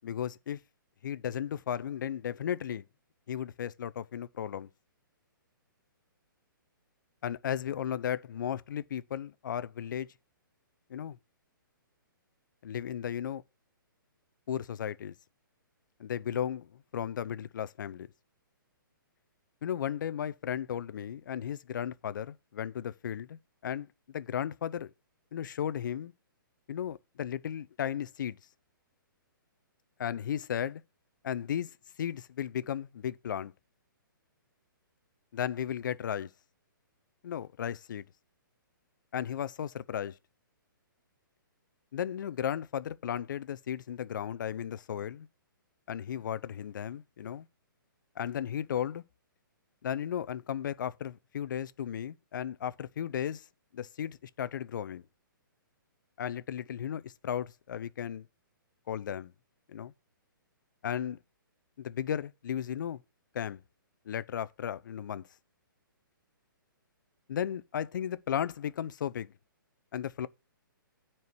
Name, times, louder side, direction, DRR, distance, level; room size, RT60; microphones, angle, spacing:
voice 1, 0.0-0.6 1.0-2.8 3.3-4.7 7.2-10.1 10.9-11.2 12.6-13.4 14.5-15.1 16.0-18.1 19.6-24.9 25.3-26.1 26.7-28.4 30.0-30.8 31.2-33.5 35.3-36.3 37.2-38.1 39.1-40.1 41.9-45.3 45.9-47.5 48.2-49.0 49.8-53.4 53.7-55.0 56.2-58.3 58.9-59.3 59.7-59.9 60.8-61.2 61.8-63.0 63.3-63.6 64.1-65.3 67.3-69.3 69.9-70.3, left 9 dB, 60° left, 0.7 m, -35 dB
9.4 x 4.6 x 6.0 m
hypercardioid pair, 145°, 12 cm